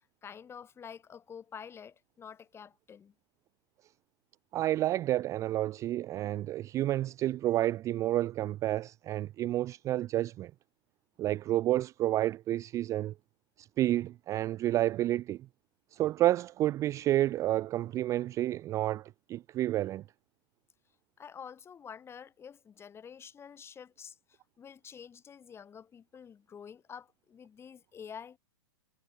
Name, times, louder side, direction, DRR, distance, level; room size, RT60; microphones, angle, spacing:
voice 1, 0.0-3.1 21.2-28.4, left 7 dB, 15° left, 2.7 m, -48 dB
voice 2, 4.5-10.5 11.2-13.1 13.6-15.4 15.9-20.0, right 14 dB, 20° right, 0.4 m, -30 dB
hypercardioid pair, 120°, 14 cm